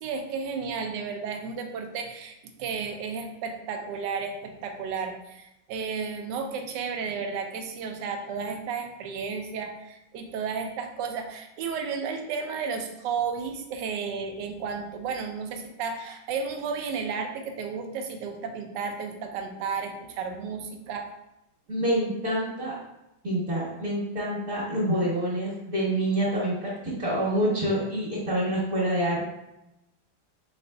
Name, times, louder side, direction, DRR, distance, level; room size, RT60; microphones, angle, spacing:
voice 1, 0.0-2.3 2.6-21.1, right 5 dB, 75° right, 5 dB, 1.2 m, -33 dB
voice 2, 21.7-22.7 23.2-29.2, right 1 dB, 45° right, -9 dB, 1.7 m, -27 dB
4.9 x 3.9 x 2.2 m, 0.89 s
omnidirectional pair, 2.1 m